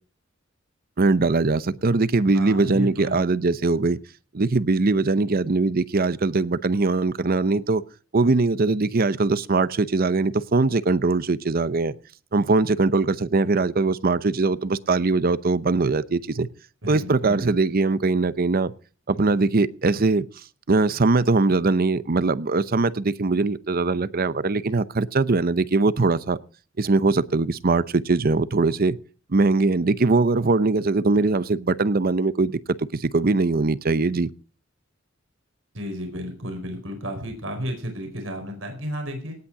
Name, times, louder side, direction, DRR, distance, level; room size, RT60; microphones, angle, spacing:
voice 1, 1.0-4.0 4.3-7.8 8.1-12.0 12.3-16.5 16.9-18.7 19.1-20.3 20.7-26.4 26.8-29.0 29.3-34.3, right 3 dB, 50° right, 0.7 m, -21 dB
voice 2, 2.3-3.2 16.8-17.5 35.7-39.4, equal, 75° right, 4.7 m, -32 dB
18.0 x 9.0 x 4.8 m
head